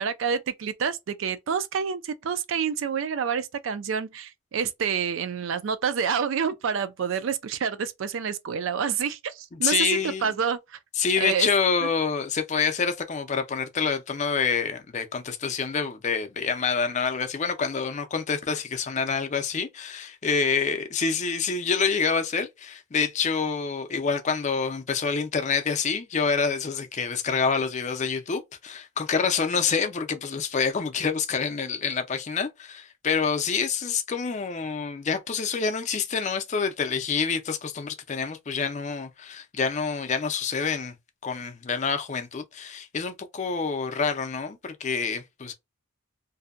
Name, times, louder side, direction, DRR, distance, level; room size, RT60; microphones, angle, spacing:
voice 1, 0.0-10.6 11.2-11.5 11.8-11.9, right 7 dB, 70° right, 0.4 m, -28 dB
voice 2, 9.5-10.4 11.0-40.9 41.2-45.5, left 5 dB, 35° left, 0.4 m, -27 dB
2.6 x 2.1 x 2.4 m
head